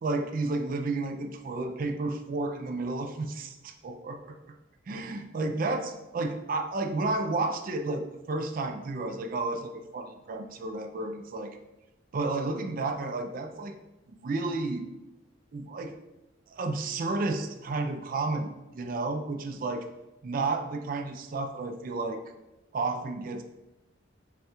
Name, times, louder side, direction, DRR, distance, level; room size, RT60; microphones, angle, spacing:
voice 1, 0.0-4.4 4.9-11.5 12.1-13.8 14.2-14.9 15.5-16.0 16.5-19.9 20.2-22.2 22.7-23.4, right 3 dB, 45° right, 5 dB, 0.4 m, -32 dB
5.4 x 2.3 x 2.9 m, 1.0 s
head